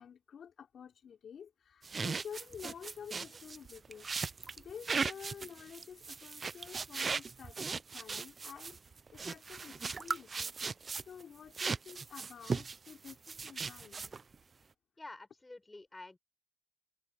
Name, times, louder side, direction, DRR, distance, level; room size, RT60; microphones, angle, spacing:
voice 1, 0.0-4.1 4.6-8.8 9.1-10.5 11.1-14.1, left 7 dB, 55° left, 3.3 m, -50 dB
sound 1, 1.8-11.2 11.5-14.3, right 4 dB, 35° right, 0.6 m, -38 dB
voice 2, 15.0-16.2, left 2 dB, 15° left, 7.2 m, -49 dB
open air
cardioid pair, 90°, 0 cm